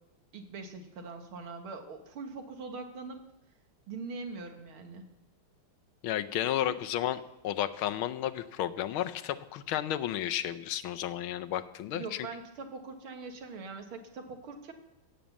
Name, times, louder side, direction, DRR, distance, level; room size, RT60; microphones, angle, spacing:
voice 1, 0.3-3.2 3.9-5.1 6.6-6.7 11.9-14.7, right 4 dB, 80° right, 5 dB, 2.5 m, -42 dB
voice 2, 6.0-12.3, left 11 dB, 80° left, 11 dB, 1.6 m, -32 dB
16.5 x 8.9 x 7.1 m, 0.96 s
omnidirectional pair, 2.3 m